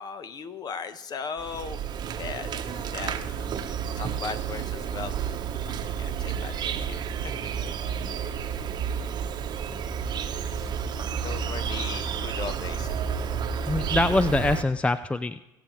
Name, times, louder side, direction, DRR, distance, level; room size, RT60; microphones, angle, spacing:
voice 1, 0.0-1.8 2.2-3.6 4.0-5.3 5.6-7.5 10.5-10.6 11.2-12.9, left 5 dB, 40° left, 11 dB, 1.0 m, -38 dB
Insect, 1.4-14.6, right 7 dB, 45° right, 1.0 m, -31 dB
voice 2, 13.7-15.4, left 2 dB, 10° left, 14 dB, 0.4 m, -24 dB
23.5 x 8.2 x 3.1 m, 1.0 s
hypercardioid pair, 75°, 10 cm